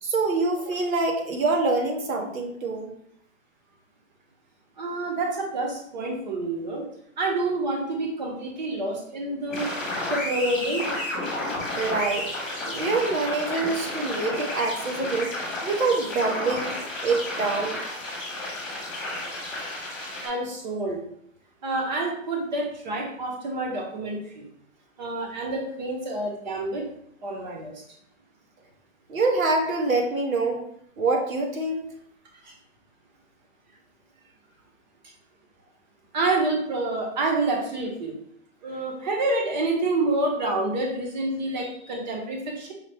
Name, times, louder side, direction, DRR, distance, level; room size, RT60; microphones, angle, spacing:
voice 1, 0.0-2.9 11.8-12.3 12.7-15.3 15.6-16.7 17.0-17.8 29.1-30.6 31.0-31.8, right 3 dB, 85° right, 2 dB, 1.3 m, -25 dB
voice 2, 4.8-6.8 7.2-9.7 10.1-10.9 20.2-21.0 21.6-24.5 25.0-26.9 27.2-27.8 32.4-32.5 36.1-38.1 38.6-42.7, right 2 dB, 35° right, 0 dB, 0.9 m, -28 dB
sound 1, 9.5-20.3, left 1 dB, ahead, 0.9 m, -32 dB
5.5 x 2.3 x 3.5 m, 0.70 s
hypercardioid pair, 170°, 40 cm